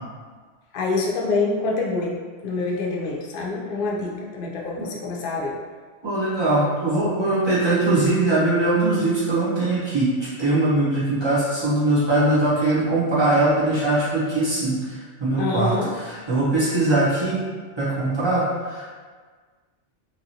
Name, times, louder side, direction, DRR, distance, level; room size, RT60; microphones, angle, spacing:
voice 1, 0.7-2.2 2.4-5.6 15.4-15.9, left 3 dB, 55° left, -3 dB, 0.6 m, -26 dB
voice 2, 6.0-14.8 15.2-17.4 17.8-18.8, right 2 dB, 25° right, -10 dB, 1.0 m, -21 dB
3.0 x 2.6 x 2.7 m, 1.5 s
omnidirectional pair, 1.2 m